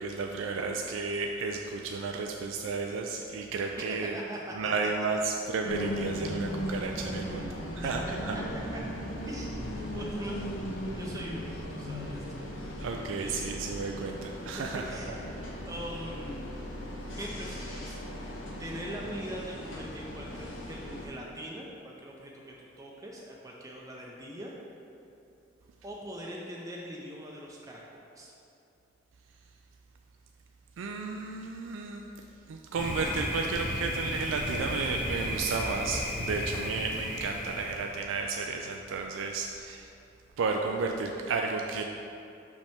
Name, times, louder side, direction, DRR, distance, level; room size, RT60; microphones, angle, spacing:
voice 1, 0.0-4.1 4.5-7.5 7.8-8.0 8.3-8.4 12.8-15.0 30.8-39.9 40.4-41.8, right 4 dB, 90° right, 2 dB, 0.4 m, -33 dB
voice 2, 3.9-4.7 7.4-7.5 8.7-8.8 9.3-10.4 10.9-12.2 13.2-13.5 14.6-15.4 15.7-16.7 17.2-18.0 18.3-24.5 25.8-28.3, equal, 20° right, -3 dB, 0.5 m, -42 dB
sound 1, 5.6-21.1, equal, 85° left, 0.9 m, -38 dB
Thunder, 32.7-38.0, equal, 50° left, 1.2 m, -34 dB
6.4 x 5.2 x 3.5 m, 2.7 s
head